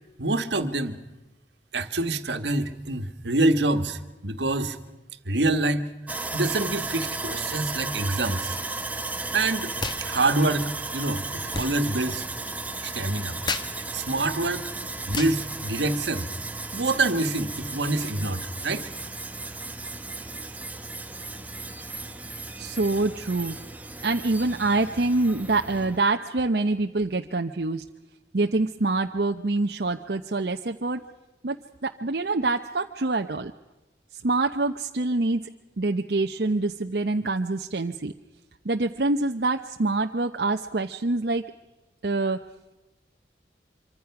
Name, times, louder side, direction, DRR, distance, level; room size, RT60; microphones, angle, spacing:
voice 1, 0.2-1.0 1.7-4.8 5.2-5.9 6.3-8.6 9.3-9.7 10.0-12.3 12.8-13.4 13.9-14.6 15.1-16.3 16.7-18.9, right 2 dB, 80° right, 8 dB, 1.5 m, -26 dB
Sawing, 6.1-26.0, right 3 dB, 10° right, 0.9 m, -35 dB
sound 1, 9.8-10.0 10.3-16.5, left 3 dB, 25° left, 1.2 m, -37 dB
voice 2, 22.6-23.6 24.0-27.8 28.3-31.0 31.4-31.6 31.8-33.5 34.2-35.5 35.8-38.1 38.6-41.4 42.0-42.4, right 2 dB, 60° right, 4 dB, 0.8 m, -25 dB
25.5 x 24.5 x 5.9 m, 1.1 s
head